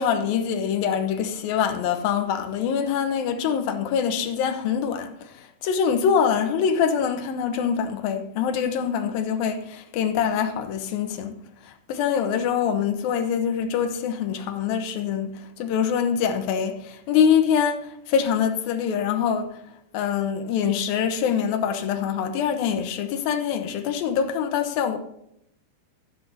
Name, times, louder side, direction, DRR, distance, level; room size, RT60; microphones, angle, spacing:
voice 1, 0.0-5.1 5.6-11.3 11.9-19.5 19.9-25.0, left 7 dB, 70° left, 2.5 m, -24 dB
12.5 x 10.0 x 4.1 m
omnidirectional pair, 4.9 m